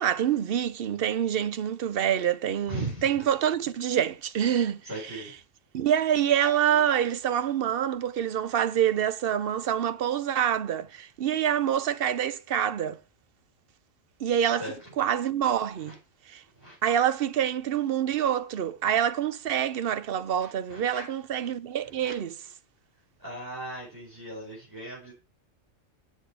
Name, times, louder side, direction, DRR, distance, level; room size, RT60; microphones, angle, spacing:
voice 1, 0.0-4.8 5.7-13.0 14.2-14.6 15.0-15.9 16.3-16.4 16.8-22.3, right 9 dB, 60° right, 0.7 m, -26 dB
voice 2, 2.7-3.2 4.8-5.3 6.7-6.8 14.5-14.8 15.8-16.0 16.5-16.8 20.4-21.0 22.0-22.1 23.2-25.1, right 1 dB, 15° right, 5.0 m, -38 dB
8.0 x 6.7 x 4.7 m
omnidirectional pair, 1.3 m